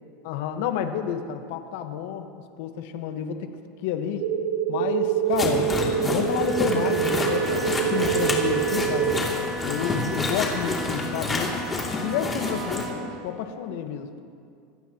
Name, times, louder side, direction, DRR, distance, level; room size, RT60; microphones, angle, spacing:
voice 1, 0.2-2.3 2.6-3.5 3.8-4.3 4.7-9.2 9.6-11.7 12.0-14.1, left 8 dB, 70° left, 6 dB, 1.4 m, -29 dB
sound 1, 4.2-9.2, right 10 dB, 85° right, 2.1 m, -25 dB
sound 2, 5.3-12.9, left 2 dB, 20° left, 2.8 m, -29 dB
Wind instrument woodwind instrument, 5.8-13.0, right 1 dB, 10° right, 2.6 m, -35 dB
26.0 x 17.0 x 3.1 m, 2.4 s
supercardioid pair, 125°, 0 cm